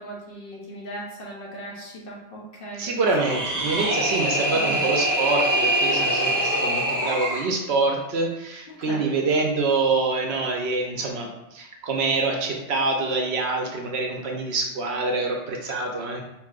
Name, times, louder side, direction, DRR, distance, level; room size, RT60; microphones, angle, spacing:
voice 1, 0.0-3.1 4.5-4.8 8.7-9.0, right 1 dB, 55° left, -3 dB, 0.9 m, -38 dB
voice 2, 2.8-16.2, right 3 dB, 65° right, 1 dB, 0.8 m, -25 dB
sound 1, 3.0-7.5, right 1 dB, 25° right, 0.5 m, -24 dB
4.7 x 2.5 x 2.4 m, 0.95 s
omnidirectional pair, 1.3 m